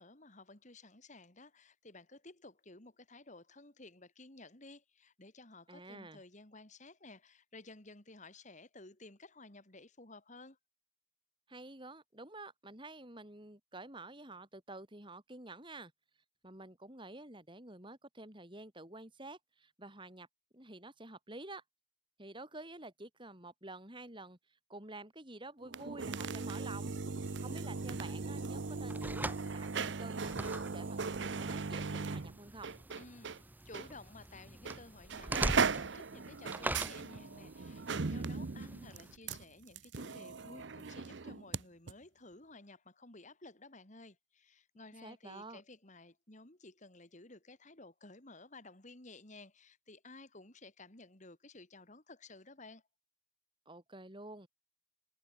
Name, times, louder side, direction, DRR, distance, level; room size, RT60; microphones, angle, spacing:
voice 1, 0.0-10.6 33.0-52.8, left 2 dB, 40° left, 2.6 m, -55 dB
voice 2, 5.7-6.2 11.5-15.9 16.4-20.3 20.5-21.6 22.2-24.4 24.7-27.0 27.4-32.7 45.0-45.6 53.7-54.5, right 2 dB, 25° right, 4.5 m, -49 dB
sound 1, 25.6-33.4 33.7-33.9 34.6-34.8 35.1-41.6 41.9-42.0, right 4 dB, 60° right, 0.8 m, -38 dB
sound 2, 27.2-39.2, right 2 dB, 10° right, 0.7 m, -44 dB
head